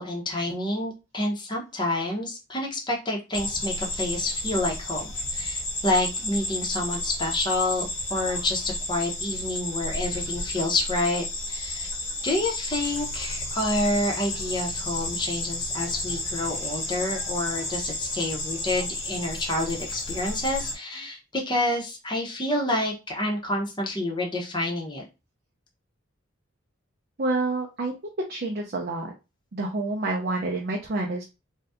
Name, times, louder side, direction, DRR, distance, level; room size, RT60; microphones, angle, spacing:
voice 1, 0.0-11.9 12.2-25.0, left 1 dB, 20° left, 0 dB, 0.8 m, -28 dB
sound 1, 3.3-20.8, left 2 dB, 80° left, 1.3 m, -32 dB
voice 2, 27.2-29.1 29.5-31.2, right 2 dB, 50° right, 0 dB, 0.5 m, -28 dB
2.7 x 2.3 x 3.4 m, 0.27 s
head